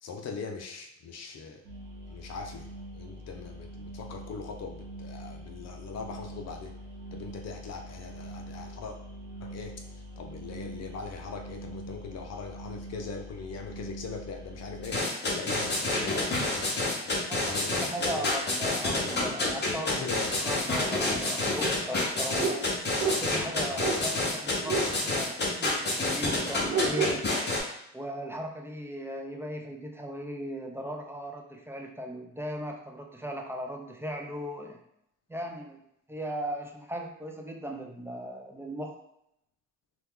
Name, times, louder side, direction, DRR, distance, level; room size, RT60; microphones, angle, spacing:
voice 1, 0.0-1.6 2.1-2.7 2.9-6.7 7.1-9.0 9.4-16.5 17.0-18.3 18.6-19.2 19.9-20.5 23.7-24.1, left 5 dB, 60° left, 4 dB, 0.6 m, -41 dB
sound 1, 1.6-14.9, right 1 dB, 85° right, 1.0 m, -43 dB
sound 2, 14.8-27.6, left 2 dB, 35° left, 1.0 m, -28 dB
voice 2, 17.3-20.0 20.4-22.5 23.2-27.1 27.9-34.8 35.3-35.8 36.1-39.0, equal, 10° right, 2 dB, 0.4 m, -37 dB
sound 3, 22.4-22.6 23.0-23.2 23.8-24.0 24.6-24.9 25.8-25.9 26.7-27.2, right 4 dB, 45° right, 1.0 m, -28 dB
2.9 x 2.3 x 3.5 m, 0.77 s
cardioid pair, 90°, 30 cm